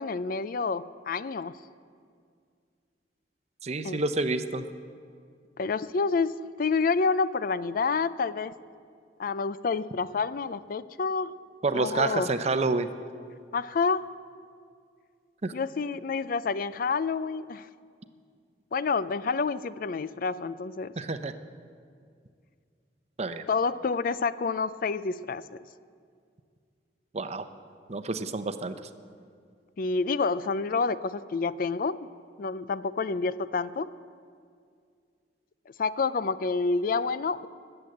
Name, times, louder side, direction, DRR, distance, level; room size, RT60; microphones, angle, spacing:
voice 1, 0.0-1.6 3.8-4.0 5.6-8.5 9.2-11.3 11.7-12.3 13.5-14.1 15.5-17.7 18.7-20.9 23.5-25.6 29.8-32.0 32.4-33.9 35.8-37.5, left 4 dB, 50° left, 16 dB, 0.4 m, -28 dB
voice 2, 3.6-4.6 11.6-12.9 15.4-15.5 21.0-21.3 23.2-23.4 27.1-27.5 27.9-28.7, right 3 dB, 35° right, 10 dB, 0.7 m, -28 dB
20.5 x 7.9 x 7.8 m, 2.2 s
head